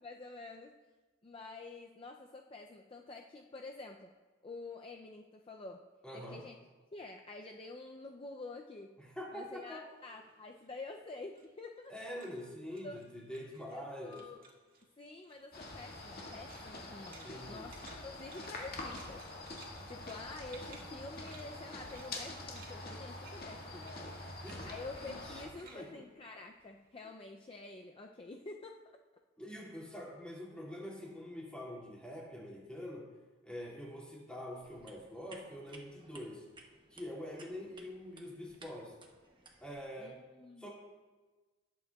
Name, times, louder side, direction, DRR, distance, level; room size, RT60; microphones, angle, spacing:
voice 1, 0.0-0.7 1.2-4.1 4.4-6.6 6.9-9.0 9.3-11.9 12.8-13.0 13.7-14.4 15.0-19.6 19.9-24.0 24.3-28.8 40.0-40.7, left 3 dB, 30° left, 3 dB, 0.4 m, -48 dB
voice 2, 6.0-6.4 9.0-9.8 11.9-14.2 17.2-17.7 24.4-24.7 25.0-26.1 29.4-33.1 33.4-36.4 36.9-38.9 39.6-40.2 40.6-40.7, equal, 5° left, -5 dB, 2.3 m, -45 dB
sound 1, 9.9-13.9 14.1-14.9 15.2-27.0, right 4 dB, 50° right, 1.9 m, -60 dB
sound 2, 15.5-25.5, left 2 dB, 50° left, 1.9 m, -46 dB
sound 3, 34.6-39.8, right 2 dB, 25° right, 1.0 m, -58 dB
18.5 x 8.3 x 2.3 m, 1.3 s
head